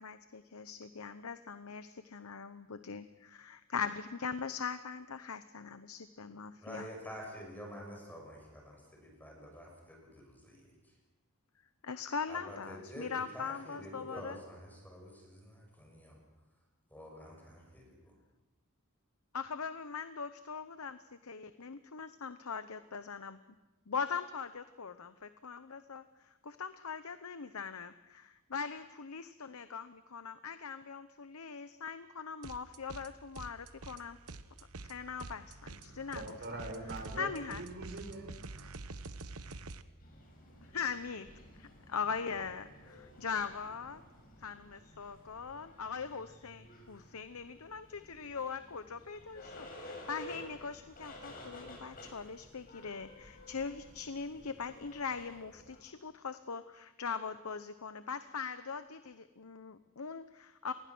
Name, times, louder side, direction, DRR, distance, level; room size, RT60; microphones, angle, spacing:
voice 1, 0.0-6.9 11.8-14.4 19.3-23.4 23.9-34.2 34.8-36.4 37.2-37.6 40.7-41.3 41.6-44.0 44.4-60.7, left 6 dB, 90° left, 11 dB, 0.9 m, -41 dB
voice 2, 6.6-10.9 12.3-16.2 16.9-18.1, equal, 10° left, 0 dB, 6.8 m, -48 dB
sound 1, 32.4-33.1 33.3-39.8, right 3 dB, 85° right, 1.1 m, -47 dB
voice 3, 35.8-37.3 37.5-38.3, right 2 dB, 55° right, 5 dB, 5.2 m, -43 dB
sound 2, 40.0-55.8, left 1 dB, 45° left, 7.2 m, -53 dB
27.5 x 20.5 x 6.2 m, 1.1 s
head